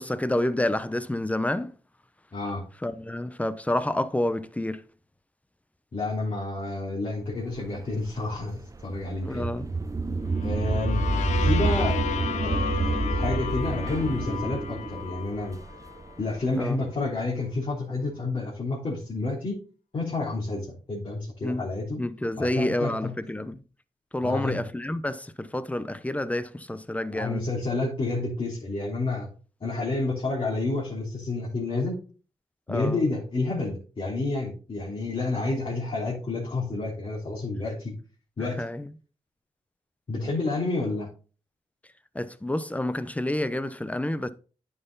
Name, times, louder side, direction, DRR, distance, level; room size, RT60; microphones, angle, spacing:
voice 1, 0.0-1.7 2.8-4.8 9.2-9.7 16.6-16.8 21.4-21.6 22.0-23.5 24.1-27.5 32.7-33.0 38.6-38.9 42.1-44.3, left 1 dB, 10° left, 0.9 m, -28 dB
voice 2, 2.3-2.6 5.9-9.5 10.4-11.0 11.4-12.0 12.4-15.6 16.2-19.6 19.9-22.0 22.4-23.1 24.2-24.7 27.1-29.3 29.6-32.0 32.7-37.9 38.4-38.6 40.1-41.1, left 3 dB, 50° left, 3.5 m, -29 dB
sound 1, 7.6-16.6, right 2 dB, 25° right, 1.0 m, -28 dB
sound 2, 10.3-16.2, left 8 dB, 85° left, 0.9 m, -34 dB
9.4 x 5.7 x 4.0 m
cardioid pair, 65°, 12 cm